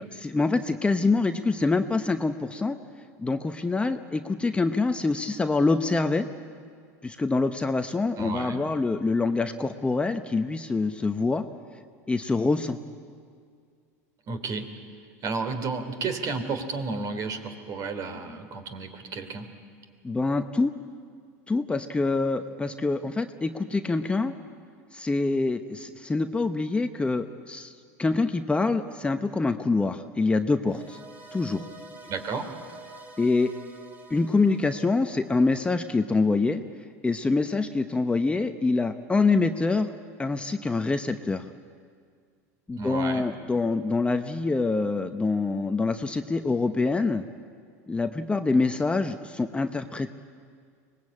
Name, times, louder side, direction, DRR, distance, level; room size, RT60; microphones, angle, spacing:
voice 1, 0.2-2.8 3.2-6.2 7.0-11.4 12.1-12.8 20.0-20.7 21.5-24.3 24.9-27.7 28.0-31.0 31.3-31.6 33.2-33.5 34.1-36.6 37.0-39.9 40.2-41.4 42.7-47.2 47.9-50.1, left 3 dB, 15° left, 7 dB, 0.9 m, -25 dB
voice 2, 8.2-8.6 14.3-14.7 15.2-19.5 32.1-32.5 42.8-43.3, right 4 dB, 45° right, 8 dB, 3.0 m, -32 dB
sound 1, 30.6-35.9, right 2 dB, 20° right, 2.6 m, -48 dB
24.5 x 20.0 x 8.6 m, 2.1 s
hypercardioid pair, 100°, 8 cm